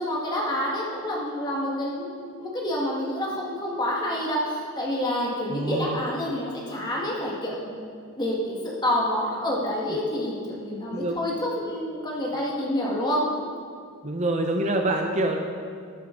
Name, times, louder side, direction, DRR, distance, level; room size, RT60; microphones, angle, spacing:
voice 1, 0.0-2.1 2.4-7.9 8.2-13.2, left 1 dB, 20° left, -4 dB, 1.8 m, -28 dB
voice 2, 5.5-6.0 10.9-11.2 14.0-15.4, right 1 dB, 35° right, 3 dB, 0.6 m, -26 dB
13.0 x 8.5 x 3.9 m, 2.2 s
head